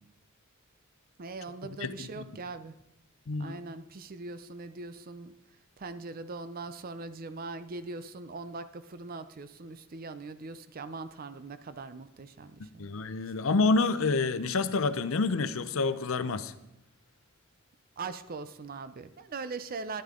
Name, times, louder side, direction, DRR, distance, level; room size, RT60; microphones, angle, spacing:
voice 1, 1.2-2.7 3.4-5.3 5.8-13.0 18.0-20.0, right 3 dB, 40° right, 12 dB, 0.5 m, -41 dB
voice 2, 1.8-2.3 3.3-3.6 12.6-16.5, left 3 dB, 65° left, 12 dB, 0.6 m, -28 dB
12.0 x 10.5 x 3.7 m, 0.85 s
head